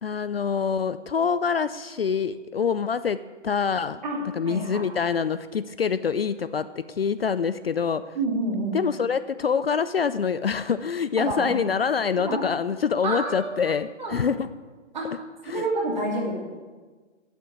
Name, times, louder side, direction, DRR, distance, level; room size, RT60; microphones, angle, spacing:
voice 1, 0.0-4.0 4.4-8.0 8.7-14.5 15.5-15.7, left 6 dB, 55° left, 13 dB, 0.4 m, -25 dB
voice 2, 4.4-5.1 8.1-8.8 11.2-11.6 12.1-12.4 13.0-13.5 14.0-14.2 14.9-15.1 15.4-16.3, right 2 dB, 35° right, -2 dB, 2.8 m, -28 dB
8.5 x 7.9 x 8.9 m, 1.4 s
hypercardioid pair, 175°, 37 cm